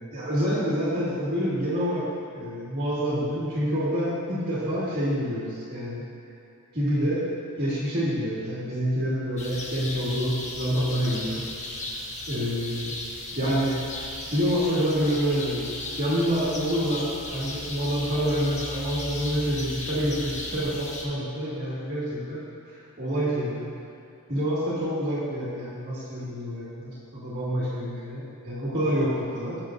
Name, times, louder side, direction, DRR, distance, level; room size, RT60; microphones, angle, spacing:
voice 1, 0.1-2.1 2.3-6.1 6.7-7.3 7.6-11.5 12.3-12.9 13.4-13.8 14.3-15.7 16.0-22.4 22.7-23.6 24.3-29.6, equal, 45° right, -9 dB, 2.1 m, -27 dB
sound 1, 9.4-21.0, left 2 dB, 35° left, 1.2 m, -36 dB
18.0 x 7.4 x 2.6 m, 2.6 s
head